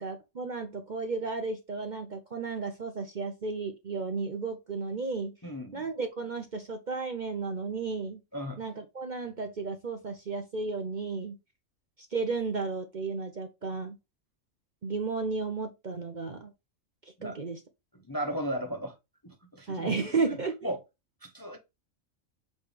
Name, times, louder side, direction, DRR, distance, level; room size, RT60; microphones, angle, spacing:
voice 1, 0.0-5.4 5.7-8.2 8.6-11.4 12.1-14.0 14.8-16.5 17.2-17.6 19.7-20.7, right 4 dB, 40° right, 0.8 m, -33 dB
voice 2, 5.4-5.8 8.3-8.6 17.2-17.4 18.1-18.9 19.2-20.0 20.6-20.8 21.2-21.6, equal, 20° left, 0.7 m, -35 dB
6.7 x 3.3 x 5.0 m
omnidirectional pair, 1.4 m